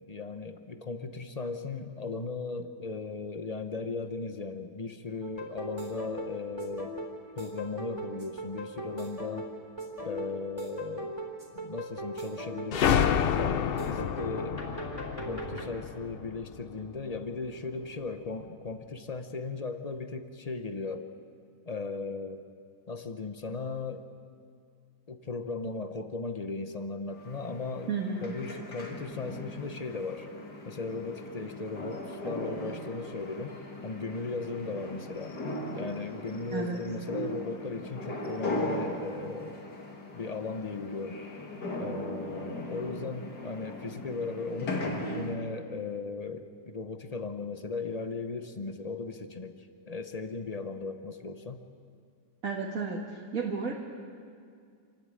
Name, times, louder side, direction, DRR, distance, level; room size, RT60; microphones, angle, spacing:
voice 1, 0.0-7.0 7.4-9.5 10.0-11.2 11.5-14.8 15.3-21.1 21.7-22.4 22.9-24.0 25.1-27.9 28.2-30.3 30.7-33.6 33.8-35.4 35.7-39.6 40.1-41.2 41.8-51.6, left 3 dB, 30° left, 8 dB, 0.7 m, -37 dB
sound 1, 5.2-15.7, right 1 dB, 15° right, 3.8 m, -39 dB
sound 2, 12.7-17.2, left 8 dB, 90° left, 0.5 m, -29 dB
sound 3, 27.2-45.4, left 1 dB, 65° left, 2.6 m, -38 dB
voice 2, 27.9-28.2 36.5-36.8 52.4-53.7, right 5 dB, 50° right, -2 dB, 2.1 m, -32 dB
28.5 x 12.0 x 8.9 m, 2.2 s
omnidirectional pair, 1.9 m